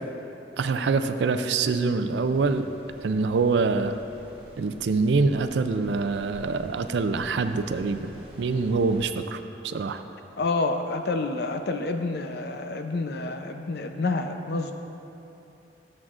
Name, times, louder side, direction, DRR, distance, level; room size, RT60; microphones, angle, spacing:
voice 1, 0.6-2.7 3.0-3.9 4.6-8.1 8.4-10.0, right 4 dB, 80° right, 9 dB, 0.4 m, -25 dB
sound 1, 2.2-9.0, right 1 dB, 30° right, 1.1 m, -48 dB
voice 2, 10.4-14.7, left 3 dB, 60° left, 6 dB, 0.6 m, -28 dB
13.0 x 7.4 x 2.5 m, 2.9 s
head